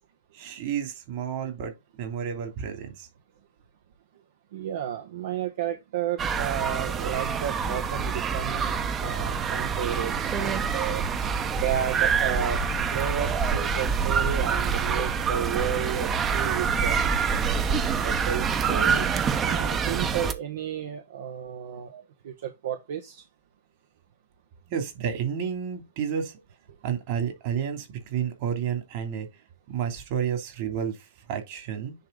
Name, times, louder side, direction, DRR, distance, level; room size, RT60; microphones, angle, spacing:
voice 1, 0.3-3.1 21.9-22.0 24.7-26.4 26.8-29.3 29.7-31.9, right 8 dB, 50° right, 3.0 m, -31 dB
voice 2, 4.5-11.0 11.6-12.6 12.9-17.0 17.6-21.9 22.2-23.2, right 9 dB, 65° right, 1.3 m, -32 dB
sound 1, 6.2-20.3, right 6 dB, 25° right, 1.0 m, -26 dB
10.0 x 3.5 x 3.9 m
hypercardioid pair, 125°, 0 cm